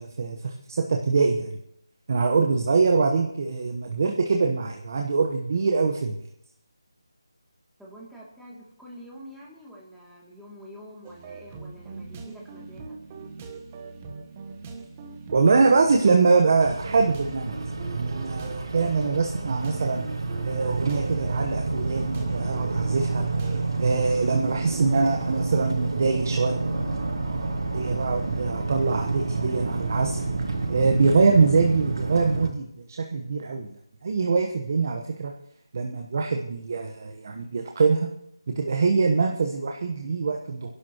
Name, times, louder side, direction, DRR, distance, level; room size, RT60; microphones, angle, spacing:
voice 1, 0.0-1.6 2.1-6.2 15.3-17.6 17.8-20.0 20.4-26.6 27.7-30.2 30.7-33.7 34.0-35.3 35.7-38.1 38.5-40.7, right 4 dB, 40° right, 3 dB, 1.1 m, -23 dB
voice 2, 7.8-13.0, equal, ahead, -7 dB, 2.7 m, -46 dB
sound 1, 11.0-23.6, right 4 dB, 20° right, 1.2 m, -41 dB
sound 2, 16.6-32.5, right 3 dB, 70° right, 4.1 m, -29 dB
27.5 x 11.5 x 3.0 m, 0.76 s
figure-of-eight pair, 170°, 2 cm